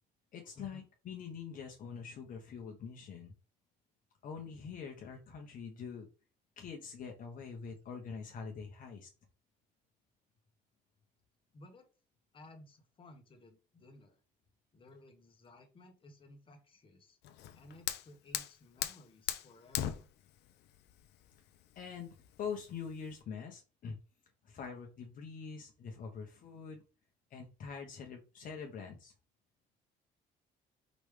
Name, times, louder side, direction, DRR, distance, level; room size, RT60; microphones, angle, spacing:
voice 1, 0.3-3.3 4.2-6.1 6.6-9.1 21.8-24.0 24.4-26.8 27.3-29.1, left 6 dB, 55° left, 2 dB, 1.0 m, -44 dB
voice 2, 11.5-11.9 12.3-14.2 14.7-17.2 17.5-20.1, left 1 dB, 30° left, 4 dB, 1.2 m, -57 dB
Fire, 17.2-23.2, left 12 dB, 80° left, 0.6 m, -41 dB
5.1 x 3.2 x 3.3 m, 0.34 s
cardioid pair, 110°, 17 cm